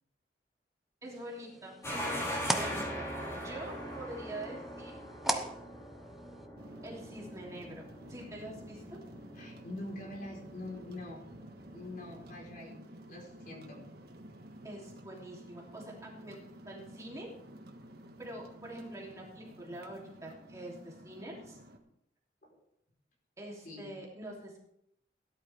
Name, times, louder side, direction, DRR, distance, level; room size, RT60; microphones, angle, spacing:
sound 1, 1.0-6.5, right 1 dB, ahead, 0.8 m, -40 dB
voice 1, 1.0-3.0 3.4-4.9 5.2-5.5 6.8-7.8 8.1-8.8 14.6-16.4 16.6-17.3 18.2-21.6 23.4-24.6, right 1 dB, 20° right, -3 dB, 3.0 m, -45 dB
sound 2, 1.8-12.6, equal, 15° left, 4.4 m, -42 dB
sound 3, 6.6-21.8, right 1 dB, 60° right, 1.7 m, -52 dB
voice 2, 9.3-11.2 11.7-12.8 13.1-13.8 22.4-22.6 23.6-23.9, left 1 dB, 50° left, 0 dB, 4.2 m, -44 dB
17.0 x 11.5 x 3.5 m, 0.73 s
head